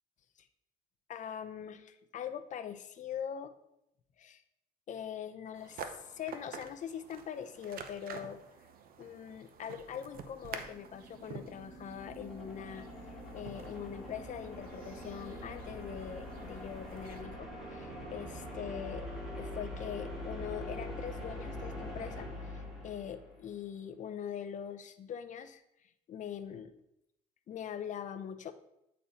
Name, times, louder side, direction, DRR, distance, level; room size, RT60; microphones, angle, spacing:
voice 1, 1.1-3.6 4.2-4.4 4.9-8.4 9.0-12.9 13.3-19.1 19.4-25.6 26.1-26.8 27.5-28.5, left 8 dB, 50° left, 10 dB, 0.6 m, -42 dB
sound 1, 5.5-17.2, right 6 dB, 60° right, 0.8 m, -49 dB
sound 2, 10.5-23.5, left 1 dB, ahead, 2.3 m, -44 dB
8.4 x 4.3 x 4.2 m, 0.82 s
cardioid pair, 110°, 17 cm